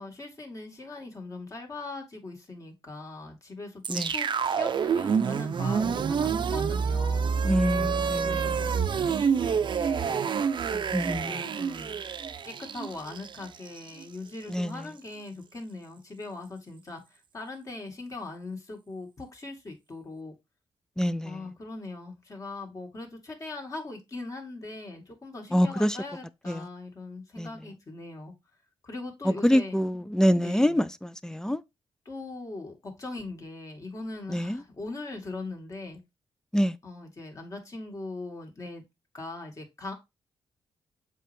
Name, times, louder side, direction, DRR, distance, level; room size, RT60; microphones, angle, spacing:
voice 1, 0.0-7.3 8.2-10.2 10.7-12.0 12.4-20.3 21.2-28.3 28.8-29.8 30.4-30.8 32.1-36.0 36.8-38.8 39.1-39.9, left 2 dB, 35° left, 2.3 m, -40 dB
sound 1, 3.8-14.0, right 6 dB, 55° right, 0.6 m, -28 dB
voice 2, 7.4-8.5 10.9-11.4 14.5-14.7 21.0-21.4 25.5-26.0 26.5-26.7 27.4-27.5 29.2-31.6 34.3-34.6 36.5-36.8, equal, 5° left, 0.4 m, -25 dB
7.4 x 4.3 x 3.5 m
cardioid pair, 105°, 10 cm